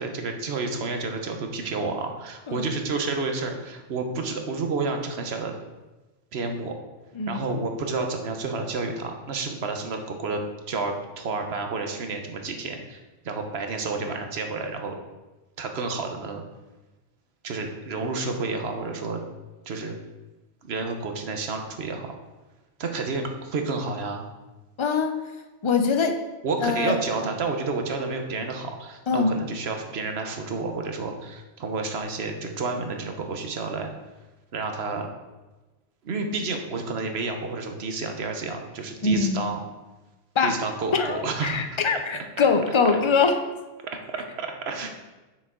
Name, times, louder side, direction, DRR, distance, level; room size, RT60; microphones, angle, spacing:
voice 1, 0.0-5.5 6.3-6.8 7.3-13.0 13.2-15.0 15.6-16.4 17.4-19.2 19.7-19.9 20.6-22.1 22.8-24.3 26.4-33.9 34.5-35.1 36.0-39.6 40.4-41.6 42.9-43.0 43.9-44.9, right 3 dB, 65° right, 4 dB, 1.1 m, -30 dB
voice 2, 24.8-25.2 25.6-26.2 26.6-26.9 29.1-29.3 39.0-39.4 40.4-40.6 40.9-43.4, left 4 dB, 40° left, 7 dB, 0.4 m, -23 dB
6.6 x 6.3 x 3.7 m, 1.1 s
omnidirectional pair, 1.2 m